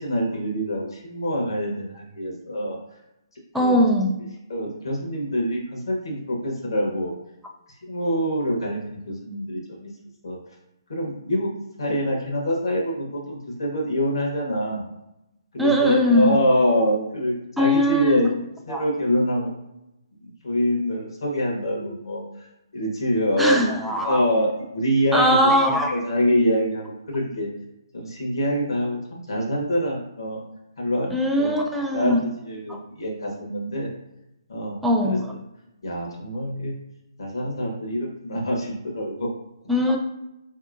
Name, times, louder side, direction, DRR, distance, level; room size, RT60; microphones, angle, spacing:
voice 1, 0.0-2.8 3.6-3.8 4.5-7.1 7.8-9.9 10.2-10.4 10.9-11.5 11.8-14.8 15.5-18.3 18.7-19.5 20.2-22.2 22.7-27.5 27.9-30.4 30.8-31.1 31.4-31.6 31.9-32.2 32.4-33.9 34.5-34.8 35.0-35.2 35.8-36.8 37.2-39.3, equal, 70° left, -1 dB, 1.1 m, -25 dB
voice 2, 3.5-4.2 15.6-16.5 17.6-18.3 18.7-18.8 23.4-24.2 25.1-26.0 31.1-32.2 32.7-32.8 34.8-35.3 39.7-40.0, equal, 5° right, 0 dB, 0.4 m, -20 dB
4.2 x 2.8 x 2.5 m, 0.91 s
figure-of-eight pair, 145°, 2 cm